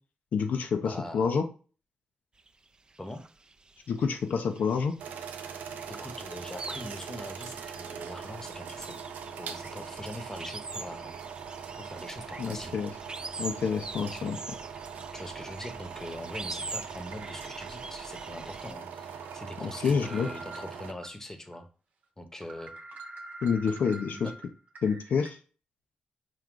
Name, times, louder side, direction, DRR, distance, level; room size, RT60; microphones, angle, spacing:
voice 1, 0.3-1.4 3.9-4.9 12.4-12.9 13.4-14.4 19.6-20.3 23.4-24.3 24.8-25.4, left 6 dB, 75° left, 6 dB, 0.5 m, -28 dB
voice 2, 0.8-1.3 3.0-3.2 5.9-9.0 9.4-11.2 11.8-12.7 14.1-14.2 15.1-21.7 22.2-22.7 24.1-24.3, left 1 dB, 15° left, 7 dB, 0.8 m, -42 dB
sound 1, 2.4-18.7, right 3 dB, 30° right, 0.4 m, -45 dB
sound 2, 5.0-20.9, right 7 dB, 90° right, 0.4 m, -42 dB
sound 3, 13.6-13.7 14.2-14.3 15.5-15.7 17.1-18.2 18.6-18.7 19.2-21.1 21.5-21.6 22.0-22.1 22.4-25.3, right 2 dB, 70° right, 0.8 m, -46 dB
4.7 x 2.3 x 3.7 m, 0.38 s
cardioid pair, 60°, 3 cm